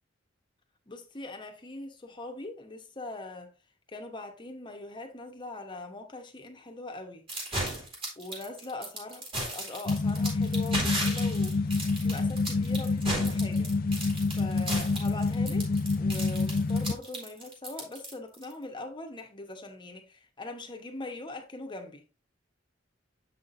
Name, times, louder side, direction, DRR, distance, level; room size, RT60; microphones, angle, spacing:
voice 1, 0.9-3.5 3.9-7.3 8.2-13.7 14.4-15.7 16.0-22.1, left 2 dB, 25° left, 1.0 m, -42 dB
sound 1, 7.3-18.5, right 1 dB, 30° right, 2.3 m, -35 dB
sound 2, 9.9-16.9, left 3 dB, 50° left, 0.5 m, -28 dB
7.2 x 5.7 x 2.6 m
head